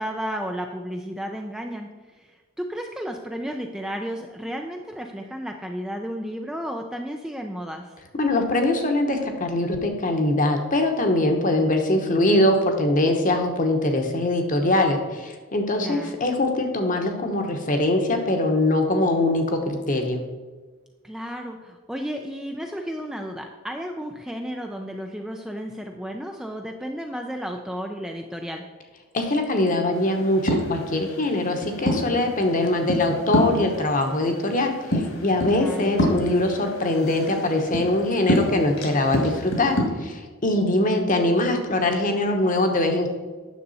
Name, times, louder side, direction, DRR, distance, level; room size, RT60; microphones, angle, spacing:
voice 1, 0.0-1.9 2.2-2.3 2.6-8.0 15.8-16.1 21.0-28.7 35.5-35.9 40.8-41.1, equal, 5° right, 3 dB, 0.4 m, -33 dB
voice 2, 8.1-20.2 29.1-43.1, left 1 dB, 40° left, 4 dB, 1.0 m, -22 dB
sound 1, 29.9-39.8, equal, 65° left, 2.1 m, -28 dB
9.5 x 6.7 x 4.1 m, 1.3 s
head